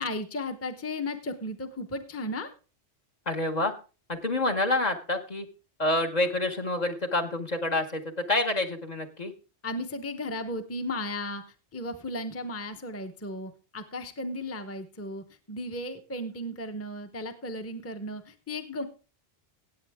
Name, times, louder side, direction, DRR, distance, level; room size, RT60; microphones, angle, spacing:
voice 1, 0.0-2.5 9.6-11.4 11.7-18.9, left 1 dB, 15° left, 7 dB, 0.8 m, -35 dB
voice 2, 3.3-3.7 4.1-5.5 5.8-8.0 8.3-9.3, left 2 dB, 40° left, 5 dB, 1.1 m, -27 dB
16.5 x 8.4 x 3.5 m, 0.34 s
omnidirectional pair, 1.1 m